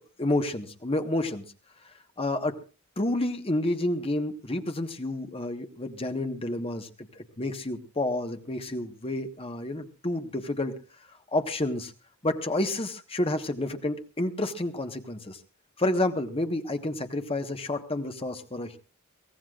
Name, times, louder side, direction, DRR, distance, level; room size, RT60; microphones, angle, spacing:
voice 1, 0.0-1.4 1.8-2.6 3.0-10.8 11.3-11.9 12.2-15.4 15.8-18.8, left 1 dB, 25° left, 7 dB, 1.3 m, -30 dB
23.0 x 17.5 x 2.5 m, 0.33 s
head